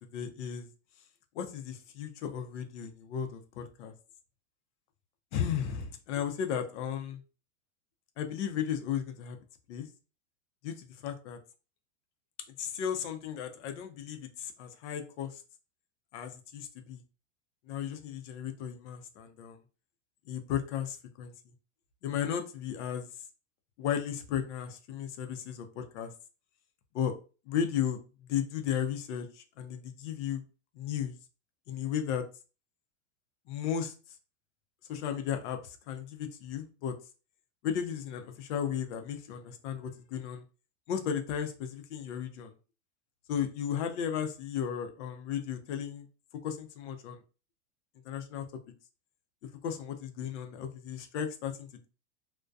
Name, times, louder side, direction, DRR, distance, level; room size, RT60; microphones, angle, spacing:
voice 1, 0.1-0.7 1.3-3.9 5.3-7.2 8.2-9.4 9.7-9.9 10.6-11.4 12.6-15.4 16.1-17.0 17.7-19.6 20.3-21.3 22.0-23.1 23.8-26.1 26.9-27.1 27.5-28.0 28.3-30.4 30.7-31.2 31.7-32.3 33.5-33.9 34.9-37.0 37.6-40.4 40.9-42.5 43.3-46.1 46.4-47.2 48.0-48.5 49.6-51.9, left 8 dB, 65° left, 6 dB, 0.6 m, -35 dB
2.5 x 2.2 x 2.2 m, 0.35 s
supercardioid pair, 135°, 37 cm